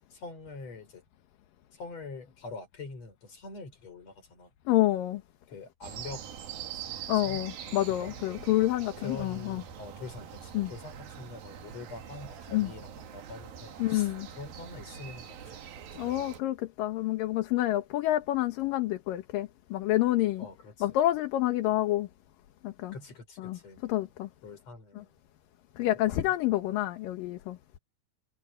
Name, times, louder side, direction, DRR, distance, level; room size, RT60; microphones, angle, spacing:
voice 1, 0.1-1.0 1.7-4.5 5.5-6.2 7.2-8.1 9.0-16.1 20.4-21.0 22.9-23.8 24.4-25.2 25.8-26.3, left 3 dB, 45° left, 6.7 m, -45 dB
voice 2, 4.7-5.2 7.1-9.6 10.5-10.7 12.5-12.7 13.8-14.3 16.0-20.5 20.8-22.1 22.6-22.9 23.4-24.3 25.8-27.6, left 15 dB, 75° left, 2.8 m, -28 dB
sound 1, 5.8-16.4, right 9 dB, 80° right, 3.9 m, -44 dB
omnidirectional pair, 4.1 m